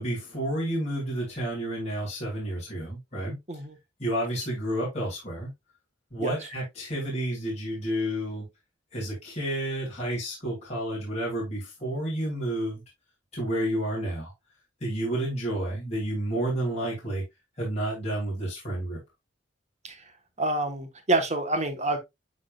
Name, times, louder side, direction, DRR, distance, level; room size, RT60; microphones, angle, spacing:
voice 1, 0.0-3.4 4.0-5.5 6.1-8.4 8.9-12.8 13.3-14.3 14.8-17.2 17.6-19.0, right 1 dB, 35° left, 2.8 m, -30 dB
voice 2, 20.4-22.0, right 2 dB, 40° right, 1.3 m, -27 dB
10.5 x 3.7 x 2.4 m
head